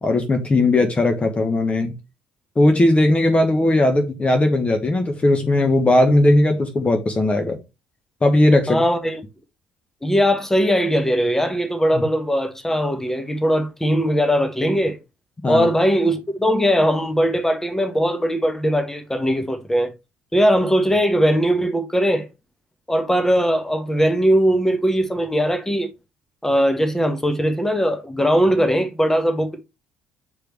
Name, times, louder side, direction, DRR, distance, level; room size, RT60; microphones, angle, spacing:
voice 1, 0.0-1.9 2.6-7.6 8.2-8.8 11.9-12.0 15.4-15.7, left 1 dB, 25° left, 1.2 m, -18 dB
voice 2, 8.7-9.2 10.0-15.0 15.5-19.9 20.3-22.3 22.9-25.9 26.4-29.6, equal, 10° left, 1.3 m, -20 dB
7.6 x 5.0 x 3.1 m
figure-of-eight pair, 50°, 5 cm